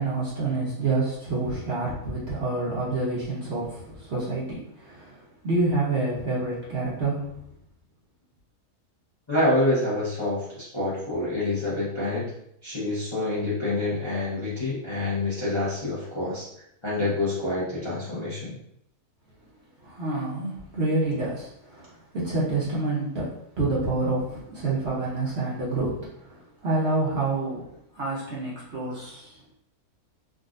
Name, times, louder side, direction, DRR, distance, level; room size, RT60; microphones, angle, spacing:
voice 1, 0.0-7.2 19.8-23.3 23.6-27.7 27.9-29.5, right 2 dB, 55° right, -6 dB, 0.9 m, -28 dB
voice 2, 9.3-12.3 12.6-16.5 16.8-18.6, left 2 dB, 25° left, -9 dB, 0.6 m, -27 dB
3.7 x 2.3 x 2.4 m, 0.75 s
omnidirectional pair, 1.6 m